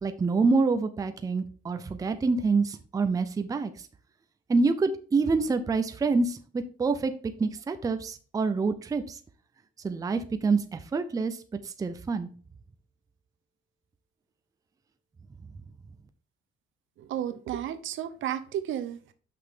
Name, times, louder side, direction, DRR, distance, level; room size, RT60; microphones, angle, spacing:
voice 1, 0.0-3.9 4.5-7.1 7.4-9.2 9.8-11.4 11.6-12.3, right 4 dB, 15° right, 9 dB, 0.5 m, -26 dB
voice 2, 17.0-19.1, right 10 dB, 70° right, 11 dB, 0.8 m, -33 dB
6.1 x 5.9 x 3.6 m, 0.41 s
cardioid pair, 155°, 21 cm